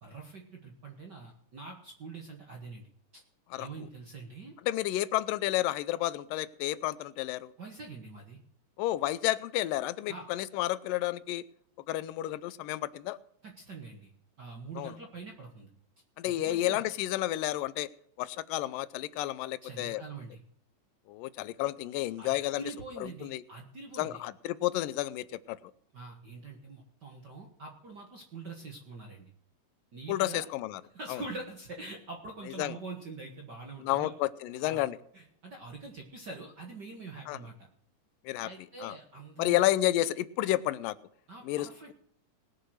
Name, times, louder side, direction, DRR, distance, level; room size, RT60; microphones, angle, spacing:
voice 1, 0.0-2.9 3.1-3.2 3.6-4.6 7.6-8.4 10.1-10.3 13.4-14.1 14.4-15.7 16.2-16.8 19.6-20.4 22.2-24.2 25.9-29.3 29.9-30.5 30.9-34.1 34.6-34.8 35.1-37.7 38.4-39.6 41.3-41.9, right 3 dB, 50° right, 2 dB, 1.2 m, -44 dB
voice 2, 4.7-7.5 8.8-11.4 11.9-13.2 14.8-15.0 16.2-17.9 18.2-20.0 21.1-22.6 23.0-23.4 24.0-25.6 30.1-30.8 31.1-31.2 32.6-32.8 33.8-35.0 37.3-37.4 38.3-38.5 38.8-39.0 39.4-41.0 41.4-41.9, left 15 dB, 85° left, 17 dB, 2.3 m, -31 dB
19.0 x 6.7 x 6.3 m, 0.70 s
omnidirectional pair, 3.8 m